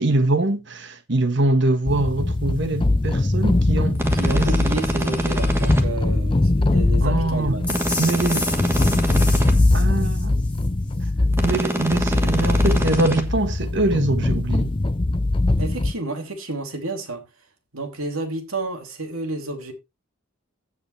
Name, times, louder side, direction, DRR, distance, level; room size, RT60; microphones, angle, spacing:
voice 1, 0.0-4.5 7.0-7.5 8.0-8.5 9.7-10.4 11.4-14.7, right 2 dB, 55° right, 1.4 m, -23 dB
sound 1, 1.9-15.9, left 2 dB, 25° left, 0.5 m, -21 dB
sound 2, 3.9-5.8 7.6-9.5 11.3-13.2, right 1 dB, 10° right, 1.3 m, -25 dB
voice 2, 4.1-7.8 15.6-17.5 17.7-19.7, right 2 dB, 85° right, 2.9 m, -31 dB
sound 3, 7.7-10.7, left 2 dB, 5° left, 2.6 m, -31 dB
15.5 x 5.4 x 3.2 m
head